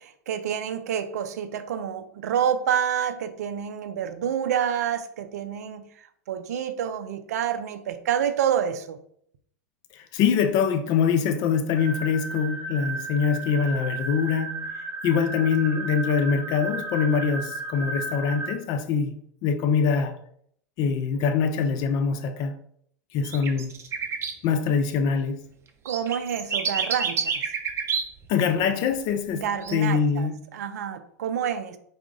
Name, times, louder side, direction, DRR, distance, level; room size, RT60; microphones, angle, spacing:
voice 1, 0.0-5.9 6.3-9.0 25.8-27.4 29.3-31.8, right 9 dB, 80° right, 0.4 m, -28 dB
voice 2, 9.9-20.1 20.8-22.6 23.1-23.7 24.4-25.5 28.3-30.4, left 6 dB, 50° left, 0.5 m, -24 dB
sound 1, 11.8-18.5, right 3 dB, 15° right, 1.1 m, -34 dB
sound 2, 23.2-24.3 25.9-28.2 29.6-29.7, right 6 dB, 30° right, 0.6 m, -28 dB
4.5 x 2.1 x 3.7 m
hypercardioid pair, 105°, 9 cm